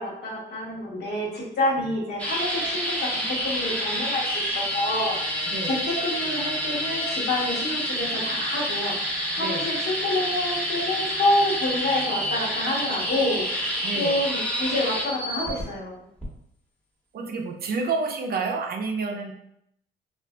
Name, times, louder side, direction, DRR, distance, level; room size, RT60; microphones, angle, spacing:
voice 1, 0.0-16.0, left 1 dB, 55° left, -3 dB, 1.0 m, -28 dB
sound 1, 2.2-15.6 16.2-16.3, equal, 5° left, 0.8 m, -28 dB
voice 2, 13.8-14.2 17.1-19.3, right 4 dB, 50° right, 3 dB, 0.5 m, -29 dB
2.6 x 2.4 x 2.2 m, 0.75 s
cardioid pair, 90°, 20 cm